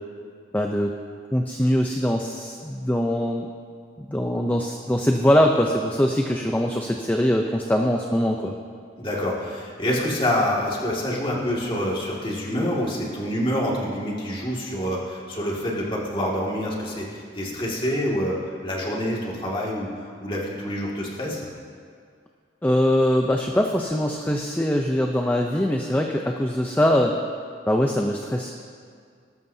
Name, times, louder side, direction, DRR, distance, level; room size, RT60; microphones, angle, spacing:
voice 1, 0.5-0.9 1.3-3.5 4.0-8.5 22.6-27.2 27.7-28.5, equal, 10° left, 2 dB, 0.5 m, -22 dB
voice 2, 9.0-21.5, equal, 30° left, -4 dB, 2.0 m, -27 dB
19.0 x 12.5 x 2.7 m, 2.2 s
head